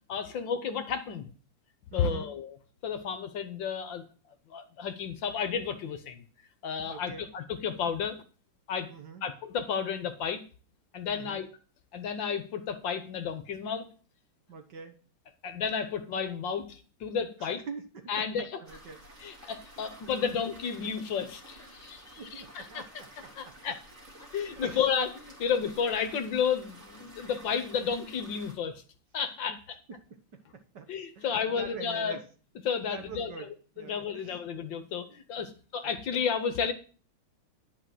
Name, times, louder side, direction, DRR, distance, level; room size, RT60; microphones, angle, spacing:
voice 1, 0.1-1.3 1.9-2.6 2.8-4.0 4.5-6.2 6.6-8.2 8.7-8.9 9.2-10.4 10.9-11.5 11.9-13.9 15.4-17.6 18.1-18.5 19.2-22.8 23.4-23.8 24.3-28.8 29.1-29.6 30.9-32.2 32.6-33.5 33.8-36.7, left 7 dB, 65° left, 9 dB, 1.6 m, -32 dB
voice 2, 1.9-2.3 6.9-7.3 8.9-9.2 11.1-11.4 14.5-15.0 17.4-18.3 18.6-19.4 22.2-23.8 24.2-24.8 29.5-29.6 29.9-32.2 32.8-34.4 35.4-35.5, right 5 dB, 55° right, 7 dB, 1.6 m, -45 dB
sound 1, 18.6-28.5, right 1 dB, 35° right, 2.7 m, -51 dB
10.5 x 4.8 x 7.6 m, 0.39 s
omnidirectional pair, 2.4 m